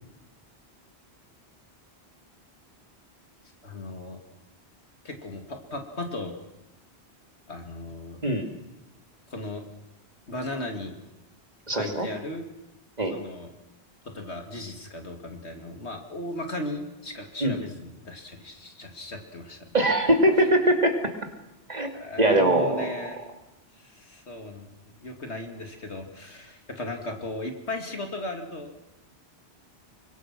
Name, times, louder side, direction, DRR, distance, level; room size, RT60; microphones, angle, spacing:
voice 1, 3.6-4.2 5.0-6.3 7.5-8.2 9.3-9.7 10.3-10.9 11.7-12.4 13.1-13.5 14.1-19.7 21.9-23.3 23.8-24.7 25.0-28.7, left 1 dB, 85° left, 4 dB, 2.9 m, -36 dB
voice 2, 11.7-12.1 13.0-13.2 17.4-17.6 19.7-21.1 21.7-21.9 22.2-22.9, right 1 dB, 40° right, 4 dB, 2.7 m, -22 dB
24.5 x 22.0 x 6.2 m, 0.95 s
omnidirectional pair, 1.1 m